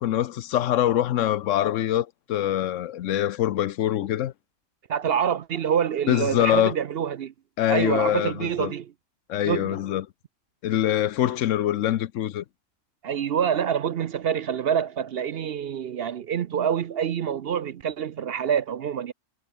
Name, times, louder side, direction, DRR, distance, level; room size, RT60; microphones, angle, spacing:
voice 1, 0.0-4.3 6.1-6.7 7.6-8.7 9.3-10.1 10.6-12.4, left 12 dB, 75° left, 1.0 m, -24 dB
voice 2, 4.9-7.3 7.7-8.9 9.5-9.8 13.0-19.1, right 8 dB, 60° right, 0.8 m, -26 dB
omnidirectional pair, 1.3 m